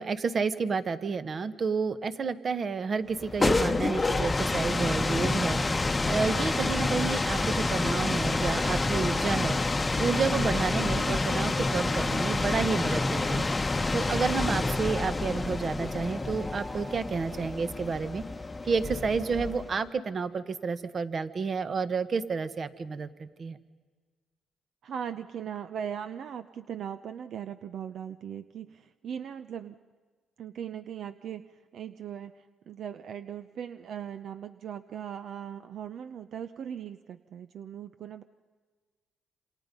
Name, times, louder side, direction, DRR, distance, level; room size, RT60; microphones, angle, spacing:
voice 1, 0.0-9.6 10.0-13.5 13.9-18.2 18.6-23.6, right 5 dB, 45° right, 12 dB, 1.3 m, -30 dB
sound 1, 3.1-19.8, left 3 dB, 20° left, 1.0 m, -28 dB
sound 2, 15.5-18.4, equal, ahead, 1.5 m, -48 dB
voice 2, 24.8-29.8 30.4-38.2, right 8 dB, 65° right, 11 dB, 0.7 m, -39 dB
27.5 x 27.0 x 5.4 m, 1.5 s
cardioid pair, 90°, 0 cm